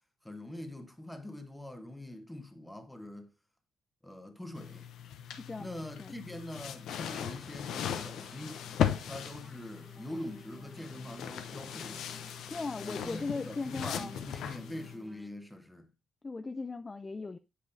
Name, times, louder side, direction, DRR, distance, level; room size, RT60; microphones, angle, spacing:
voice 1, 0.2-3.3 4.0-4.9 5.6-8.7 9.0-12.1 12.8-15.9, left 1 dB, 5° left, 1.1 m, -44 dB
sound 1, 4.5-14.9, left 9 dB, 75° left, 0.6 m, -38 dB
voice 2, 5.3-6.2 12.5-14.2 16.2-17.4, left 3 dB, 25° left, 0.3 m, -38 dB
sound 2, 7.6-15.3, right 2 dB, 10° right, 1.4 m, -55 dB
8.2 x 4.9 x 2.6 m
cardioid pair, 90°, 0 cm